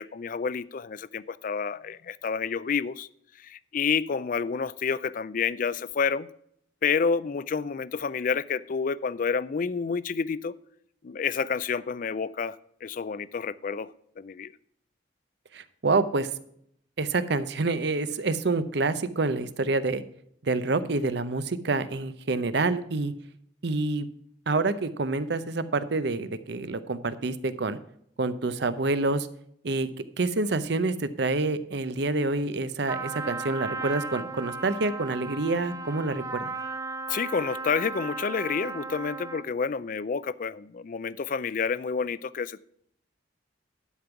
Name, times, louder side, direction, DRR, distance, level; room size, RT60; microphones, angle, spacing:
voice 1, 0.0-3.1 3.5-6.3 6.8-10.5 11.0-12.6 12.8-13.9 14.2-14.5 37.1-42.6, left 5 dB, 45° left, 18 dB, 0.4 m, -29 dB
voice 2, 15.5-16.3 17.0-20.0 20.4-23.1 23.6-24.1 24.5-27.8 28.2-29.3 29.6-29.9 30.2-36.5, right 3 dB, 60° right, 13 dB, 0.7 m, -27 dB
Trumpet, 32.9-39.6, right 3 dB, 15° right, 0.6 m, -36 dB
11.0 x 5.3 x 5.9 m, 0.70 s
head